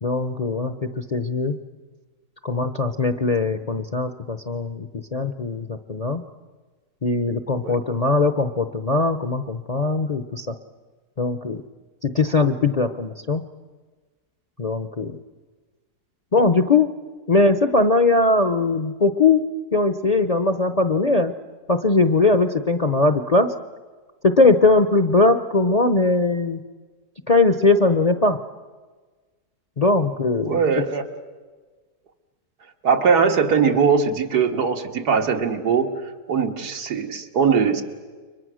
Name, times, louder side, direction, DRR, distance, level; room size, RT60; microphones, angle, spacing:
voice 1, 0.0-1.6 2.4-6.2 7.0-10.5 11.2-11.6 12.0-13.4 14.6-15.2 16.3-16.9 17.3-19.4 19.7-21.3 21.7-23.5 24.2-26.6 27.3-28.4 29.8-30.6, left 3 dB, 40° left, 8 dB, 0.6 m, -20 dB
voice 2, 30.5-31.0 32.8-35.9 36.3-37.8, right 6 dB, 85° right, 4 dB, 2.3 m, -20 dB
30.0 x 24.0 x 6.3 m, 1.4 s
omnidirectional pair, 1.7 m